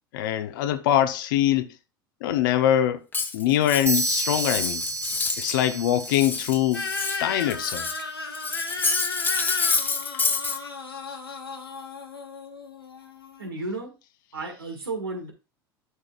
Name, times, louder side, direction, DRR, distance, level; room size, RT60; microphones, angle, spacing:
voice 1, 0.1-1.7 2.2-3.0 3.3-4.8 5.4-6.9 7.2-8.0, left 11 dB, 60° left, 0.8 m, -23 dB
Cutlery silverware, 3.1-5.6 5.9-8.0 8.3-10.6, left 4 dB, 15° left, 1.2 m, -28 dB
sound 1, 3.9-7.6, right 3 dB, 25° right, 1.6 m, -32 dB
sound 2, 6.7-13.5, left 4 dB, 85° left, 1.1 m, -34 dB
voice 2, 13.4-13.9 14.3-15.3, right 3 dB, 85° right, 1.8 m, -33 dB
11.0 x 5.0 x 2.4 m
figure-of-eight pair, 75°, 12 cm